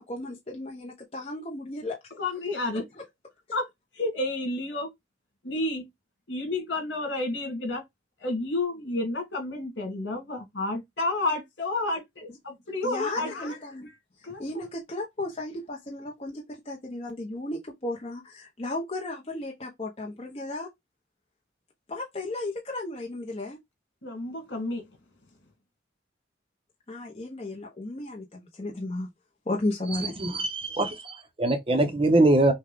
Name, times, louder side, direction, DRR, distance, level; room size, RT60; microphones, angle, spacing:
voice 1, 0.0-2.0 12.8-13.9 14.4-20.7 21.9-23.6 26.9-29.1 29.5-30.1, left 2 dB, 30° left, 0.9 m, -34 dB
voice 2, 2.1-2.8 3.5-3.7 3.9-4.9 5.4-5.9 6.3-7.8 8.2-13.5 13.8-14.0 14.2-14.7 24.0-24.9, left 2 dB, 75° left, 2.8 m, -30 dB
voice 3, 30.2-32.5, right 2 dB, 30° right, 0.8 m, -23 dB
6.2 x 2.3 x 3.5 m
head